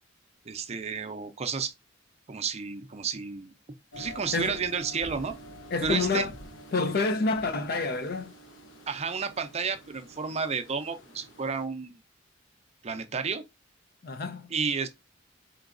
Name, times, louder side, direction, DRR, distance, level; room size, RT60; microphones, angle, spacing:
voice 1, 0.5-1.7 2.3-3.5 4.0-5.3 5.8-6.3 8.9-12.0 12.8-13.4 14.5-14.9, right 5 dB, 35° right, 0.5 m, -31 dB
sound 1, 3.9-11.6, equal, 70° left, 0.9 m, -47 dB
voice 2, 5.7-6.3 6.7-8.3 14.0-14.5, left 3 dB, 55° left, 0.5 m, -28 dB
4.4 x 3.9 x 2.5 m
head